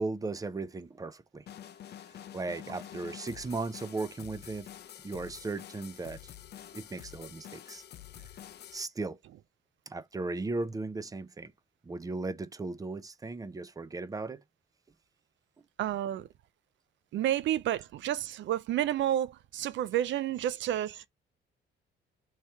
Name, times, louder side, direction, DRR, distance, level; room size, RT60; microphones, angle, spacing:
voice 1, 0.0-1.4 2.1-4.7 5.0-6.3 6.7-7.8 8.7-9.2 9.9-11.5 11.8-14.4, right 3 dB, 15° right, 0.5 m, -36 dB
sound 1, 1.5-8.8, left 11 dB, 55° left, 0.5 m, -48 dB
voice 2, 15.8-16.3 17.1-21.1, right 12 dB, 70° right, 0.5 m, -30 dB
3.1 x 2.9 x 4.5 m
cardioid pair, 90°, 20 cm